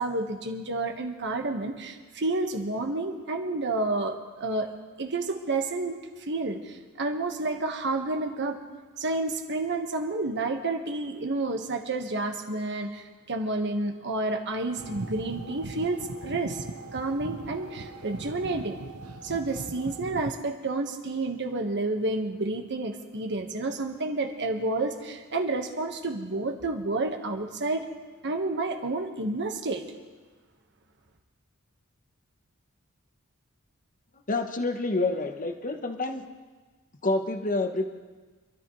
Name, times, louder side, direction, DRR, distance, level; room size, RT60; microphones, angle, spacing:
voice 1, 0.0-8.6 9.0-16.6 16.9-18.8 19.2-27.8 28.2-29.8, right 2 dB, 55° right, 4 dB, 1.4 m, -30 dB
sound 1, 14.8-20.3, right 2 dB, 80° right, 0.9 m, -39 dB
voice 2, 34.3-36.2 37.0-37.9, left 2 dB, 40° left, 6 dB, 1.1 m, -28 dB
26.0 x 13.0 x 3.2 m, 1.3 s
head